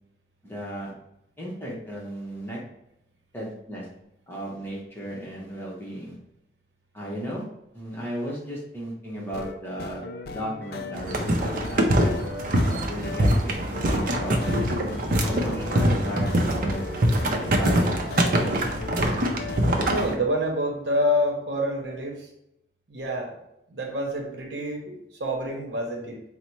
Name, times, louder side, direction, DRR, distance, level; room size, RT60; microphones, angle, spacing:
voice 1, 0.4-0.9 1.4-2.6 3.3-3.9 4.3-6.2 6.9-7.4 7.7-10.0 10.3-12.1 12.8-14.4 15.2-18.6, equal, 10° left, -4 dB, 0.9 m, -35 dB
sound 1, 9.2-20.1, left 3 dB, 55° left, 0.3 m, -38 dB
sound 2, 10.9-20.1, right 1 dB, 50° right, 0.5 m, -24 dB
voice 2, 19.9-22.3 22.9-23.3 23.7-26.2, equal, 75° right, 1 dB, 0.8 m, -27 dB
4.0 x 2.1 x 4.5 m, 0.81 s
head